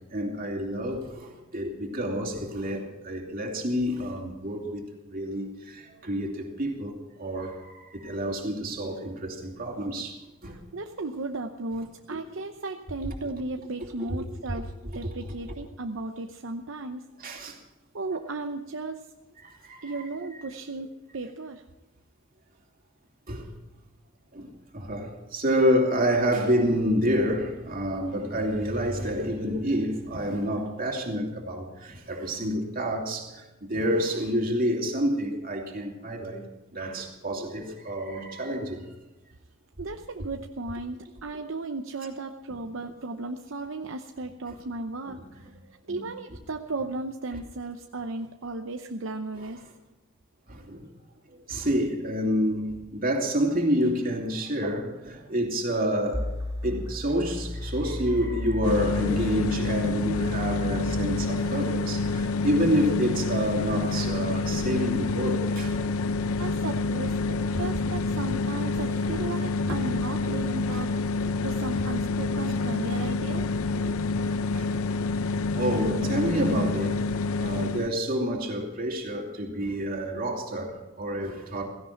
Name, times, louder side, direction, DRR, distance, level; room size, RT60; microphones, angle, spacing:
voice 1, 0.1-10.6 12.1-12.2 14.1-14.2 15.0-15.1 17.2-17.6 19.4-20.4 23.3-23.5 24.3-24.5 24.7-36.5 36.7-38.8 45.1-45.2 45.4-45.5 45.8-46.1 49.4-49.5 50.5-50.9 51.5-56.3 56.6-65.7 67.3-67.4 69.1-69.2 69.6-69.8 70.7-70.9 73.8-73.9 74.2-74.7 75.6-77.0 77.4-81.7, equal, 40° right, 2.8 m, -28 dB
voice 2, 10.4-17.1 17.9-19.1 19.8-21.6 39.8-45.5 45.9-49.6 66.4-67.2 67.6-73.5, right 3 dB, 65° right, 0.8 m, -35 dB
sound 1, 56.1-61.1, left 1 dB, 15° right, 1.5 m, -34 dB
sound 2, 58.6-77.9, left 3 dB, 90° left, 0.6 m, -28 dB
16.5 x 16.0 x 4.5 m
head